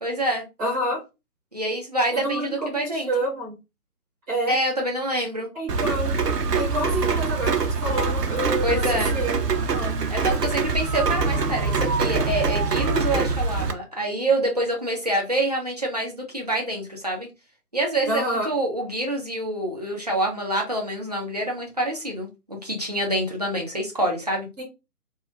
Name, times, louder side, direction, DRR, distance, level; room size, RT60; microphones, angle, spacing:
voice 1, 0.0-0.4 1.5-3.1 4.5-5.5 8.6-9.2 10.1-17.3 17.7-24.5, right 1 dB, 25° right, -1 dB, 0.5 m, -26 dB
voice 2, 0.6-1.0 2.1-3.5 4.3-4.6 5.5-6.1 6.5-8.8 9.1-9.9 18.1-18.5 24.6-24.7, right 1 dB, 5° right, -7 dB, 1.0 m, -28 dB
Rain, 5.7-13.7, right 4 dB, 80° right, 0.7 m, -24 dB
3.1 x 2.3 x 2.3 m, 0.25 s
figure-of-eight pair, 145°, 47 cm